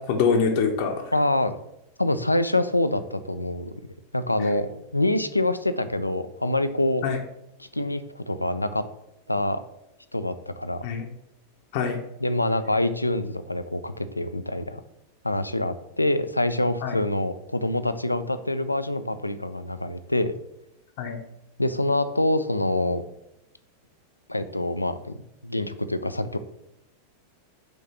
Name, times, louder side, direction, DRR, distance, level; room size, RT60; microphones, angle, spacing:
voice 1, 0.1-1.1 7.0-7.2 10.8-11.0 11.7-12.0 16.8-17.0 21.0-21.2, left 5 dB, 50° left, 2 dB, 0.8 m, -24 dB
voice 2, 1.1-1.6 2.0-3.7 4.1-7.0 7.6-8.8 9.3-9.6 10.1-10.8 12.2-14.8 15.2-20.4 21.6-23.0 24.3-25.2 25.4-26.4, left 1 dB, 85° left, 11 dB, 0.4 m, -25 dB
5.2 x 3.7 x 5.8 m, 0.85 s
figure-of-eight pair, 90°, 0 cm